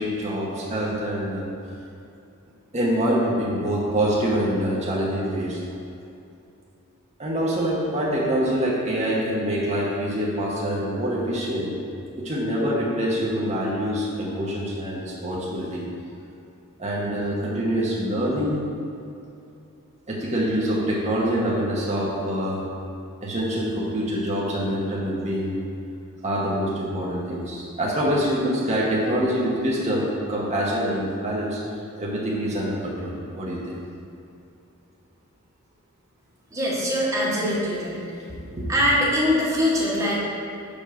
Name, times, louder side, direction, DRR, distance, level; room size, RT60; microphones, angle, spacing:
voice 1, 0.0-1.4 2.7-5.6 7.2-11.7 12.2-15.8 16.8-18.6 20.1-22.6 23.2-25.6 26.2-31.6 32.0-33.8 38.6-38.7, equal, 30° right, -5 dB, 1.1 m, -25 dB
voice 2, 36.5-38.0 38.7-40.2, equal, 15° right, -7 dB, 1.6 m, -22 dB
5.3 x 5.2 x 6.2 m, 2.6 s
head